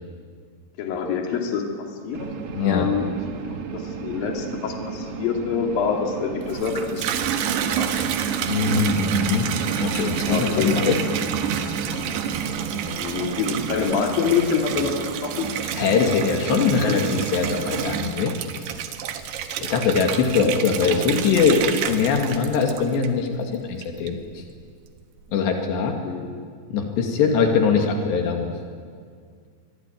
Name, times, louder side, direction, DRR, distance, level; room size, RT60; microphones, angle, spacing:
voice 1, 0.8-1.7 2.0-2.3 2.6-3.1 3.7-7.3 7.6-7.9 9.9-10.7 12.9-14.9 15.2-15.5 26.0-26.5, left 6 dB, 60° left, 2 dB, 4.2 m, -26 dB
sound 1, 2.1-12.6, right 5 dB, 55° right, 1.7 m, -35 dB
voice 2, 2.5-2.9 8.5-9.5 9.8-11.0 15.8-18.3 19.6-24.4 25.3-26.0 26.7-28.5, left 5 dB, 80° left, 3 dB, 4.4 m, -22 dB
Water tap faucet / Bathtub (filling or washing), 6.4-23.4 23.8-24.4, right 8 dB, 75° right, 3.4 m, -28 dB
27.0 x 23.0 x 9.3 m, 2.1 s
omnidirectional pair, 4.9 m